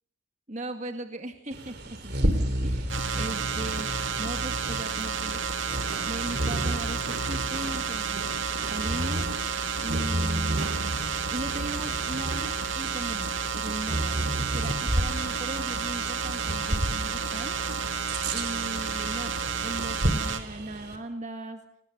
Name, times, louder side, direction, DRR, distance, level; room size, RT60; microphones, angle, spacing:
voice 1, 0.5-3.9 4.2-5.4 6.0-8.2 8.7-9.4 9.8-10.9 11.3-17.6 18.3-21.6, right 1 dB, 35° right, 6 dB, 2.1 m, -38 dB
Bird vocalization bird call bird song, 1.5-21.0, right 1 dB, 50° right, 3.3 m, -32 dB
sound 1, 2.9-20.4, right 6 dB, 70° right, 2.3 m, -31 dB
sound 2, 5.8-11.1, right 4 dB, 90° right, 1.1 m, -42 dB
29.5 x 19.5 x 6.9 m, 0.73 s
head